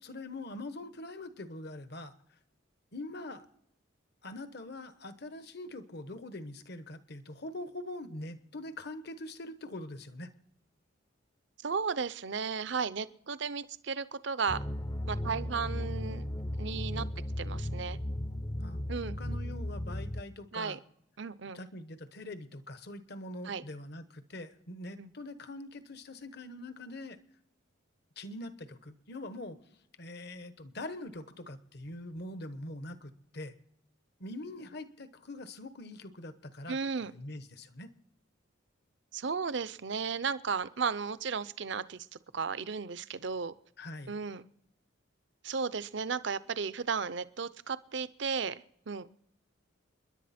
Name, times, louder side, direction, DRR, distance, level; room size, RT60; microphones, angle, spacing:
voice 1, 0.0-2.1 2.9-3.4 4.2-10.3 18.6-20.8 21.5-27.2 28.2-29.6 30.0-33.5 34.2-37.9 43.8-44.1, left 1 dB, 50° left, 1.1 m, -43 dB
voice 2, 11.6-14.6 15.1-16.3 16.6-17.1 17.4-18.0 18.9-19.2 20.5-20.8 21.2-21.6 23.4-23.6 25.0-25.1 36.7-37.1 39.1-42.1 42.3-43.5 44.1-44.4 45.4-49.1, right 5 dB, 60° right, 0.6 m, -34 dB
sound 1, 14.5-20.2, left 1 dB, 20° left, 0.6 m, -36 dB
29.5 x 11.0 x 4.3 m
head